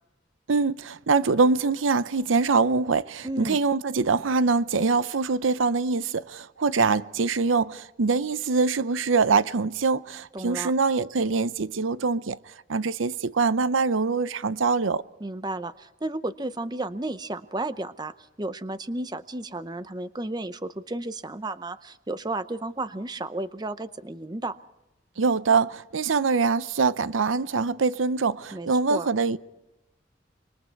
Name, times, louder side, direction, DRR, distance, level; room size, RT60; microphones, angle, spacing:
voice 1, 0.5-12.4 12.7-15.0 25.2-29.4, right 4 dB, 85° right, 0.7 m, -24 dB
voice 2, 3.2-3.6 10.3-10.7 15.2-24.6 28.5-29.1, right 2 dB, 20° right, 0.6 m, -33 dB
25.5 x 24.0 x 4.6 m
head